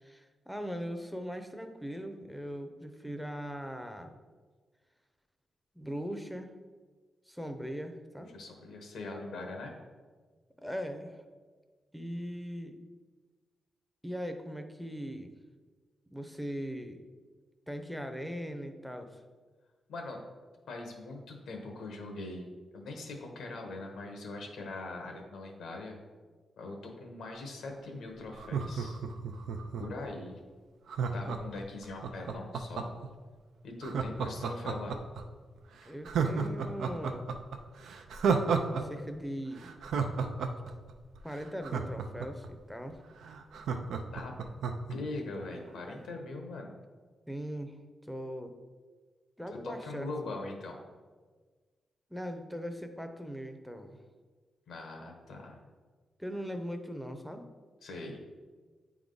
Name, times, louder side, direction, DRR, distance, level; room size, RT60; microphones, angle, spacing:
voice 1, 0.0-4.1 5.7-6.5 7.3-8.3 10.6-11.2 11.9-12.8 14.0-15.3 16.1-17.0 17.7-19.2 35.9-37.3 38.8-39.7 41.2-43.0 45.8-46.0 47.3-48.5 49.4-50.3 52.1-54.0 56.2-57.5, equal, ahead, 7 dB, 0.6 m, -40 dB
voice 2, 8.3-9.7 19.9-20.2 20.7-22.5 22.7-26.0 26.6-29.0 29.8-30.4 31.1-32.9 33.6-35.0 44.1-44.3 44.9-46.8 49.5-50.8 54.7-55.6 57.8-58.2, left 2 dB, 85° left, 2 dB, 1.2 m, -41 dB
Laughter, 28.3-30.0 30.9-33.1 33.8-35.2 35.6-35.7 36.0-38.8 39.1-39.2 39.6-42.5 42.9-43.0 43.2-45.0 45.3-45.4, right 5 dB, 90° right, 0.5 m, -32 dB
8.9 x 3.6 x 3.9 m, 1.4 s
cardioid pair, 100°, 0 cm